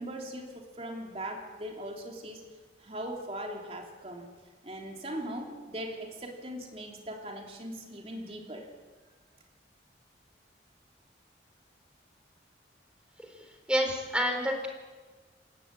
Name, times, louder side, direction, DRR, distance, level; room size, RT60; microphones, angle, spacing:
voice 1, 0.0-2.4 2.8-4.3 4.6-8.7, right 1 dB, 35° right, 2 dB, 3.3 m, -40 dB
voice 2, 13.7-14.7, equal, 5° right, 3 dB, 4.0 m, -28 dB
27.0 x 13.5 x 9.0 m, 1.3 s
head